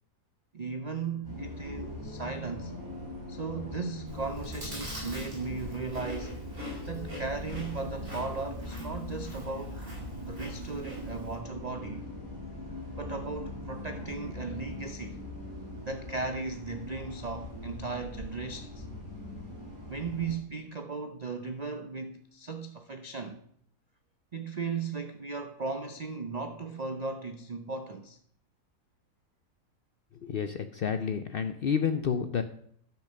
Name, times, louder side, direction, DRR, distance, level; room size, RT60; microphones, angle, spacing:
voice 1, 0.5-2.7 3.3-6.4 6.8-9.8 10.3-12.1 12.9-15.2 15.8-18.8 19.9-23.4 24.3-28.2, right 4 dB, 80° right, 0.3 m, -37 dB
Bus, 1.2-20.4, left 1 dB, 15° left, 4.4 m, -41 dB
Chewing mastication, 4.1-11.4, equal, 40° right, 5.5 m, -43 dB
voice 2, 30.2-32.4, left 7 dB, 75° left, 0.5 m, -30 dB
12.0 x 5.8 x 6.5 m
omnidirectional pair, 1.7 m